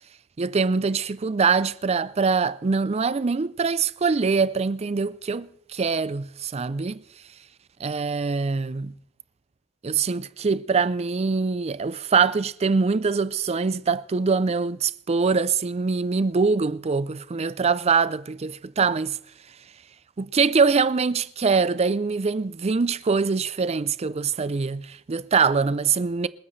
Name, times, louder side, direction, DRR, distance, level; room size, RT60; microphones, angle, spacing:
voice 1, 0.4-7.0 7.8-8.9 9.8-19.2 20.2-26.3, right 5 dB, 30° right, 0.4 m, -23 dB
28.0 x 9.5 x 3.2 m
head